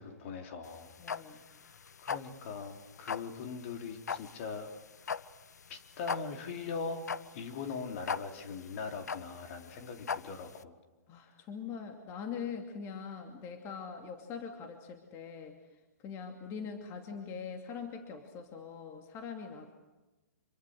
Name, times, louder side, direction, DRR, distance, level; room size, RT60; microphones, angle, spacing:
voice 1, 0.0-0.9 1.2-1.5 2.0-4.7 5.7-7.0 7.3-10.8, left 5 dB, 50° left, 5 dB, 3.3 m, -41 dB
sound 1, 0.6-10.6, left 6 dB, 80° left, 0.8 m, -39 dB
voice 2, 1.0-1.4 11.1-15.6 16.0-19.7, left 6 dB, 30° left, 4 dB, 2.7 m, -42 dB
26.5 x 24.0 x 6.5 m, 1.1 s
hypercardioid pair, 130°, 9 cm